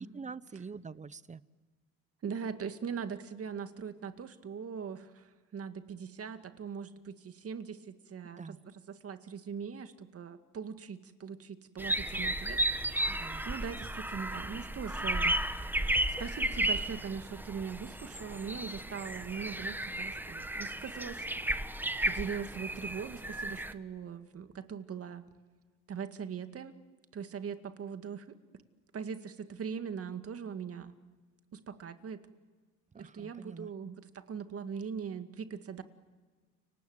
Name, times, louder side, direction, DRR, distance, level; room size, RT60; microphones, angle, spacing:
voice 1, 0.0-1.4 8.3-8.6 13.1-13.4 32.9-33.7, right 5 dB, 20° right, 18 dB, 0.8 m, -45 dB
voice 2, 2.2-15.6 16.2-21.3 22.0-25.3 25.9-26.8 27.1-28.4 28.9-30.9 31.5-32.2 32.9-35.8, right 6 dB, 45° right, 9 dB, 2.1 m, -41 dB
sound 1, 11.8-23.7, right 1 dB, 5° right, 1.3 m, -34 dB
29.5 x 25.0 x 8.0 m, 1.4 s
cardioid pair, 100°, 32 cm